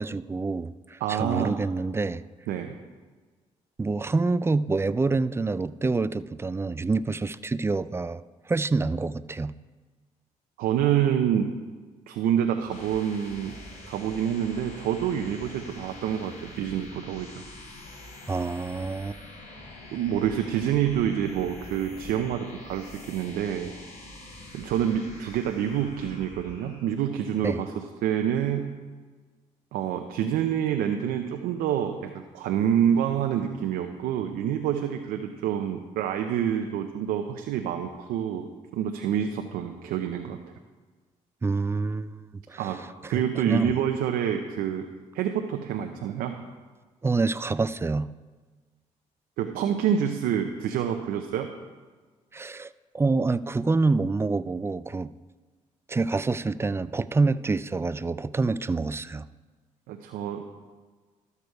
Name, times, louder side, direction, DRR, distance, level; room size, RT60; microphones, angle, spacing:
voice 1, 0.0-2.2 3.8-9.5 18.3-19.2 27.4-27.6 41.4-42.7 43.0-43.7 47.0-48.1 52.3-52.7 52.9-55.1 55.9-59.3, right 3 dB, 15° right, 16 dB, 0.4 m, -27 dB
voice 2, 1.0-1.6 2.5-2.8 10.6-11.5 12.1-17.4 19.9-23.7 24.5-28.8 29.7-40.4 42.6-42.8 43.1-44.9 45.1-46.4 49.4-51.5 59.9-60.5, right 9 dB, 80° right, 5 dB, 0.7 m, -27 dB
sound 1, 12.4-27.0, left 2 dB, 60° left, 3.5 m, -45 dB
13.0 x 6.8 x 4.6 m, 1.4 s
supercardioid pair, 60°, 15 cm